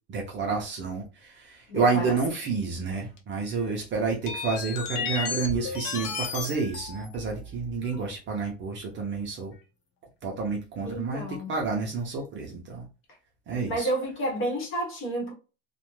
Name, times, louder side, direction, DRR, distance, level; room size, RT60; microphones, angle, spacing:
voice 1, 0.1-9.5 10.2-12.9 13.5-13.9, right 4 dB, 30° right, 0.6 m, -29 dB
voice 2, 1.7-2.2 10.8-11.5 13.7-15.3, right 1 dB, 35° left, 1.0 m, -30 dB
sound 1, 3.2-3.3 4.3-8.0 8.8-8.9 10.9-11.0, left 5 dB, 85° left, 0.9 m, -34 dB
2.5 x 2.2 x 3.0 m
cardioid pair, 155°, 38 cm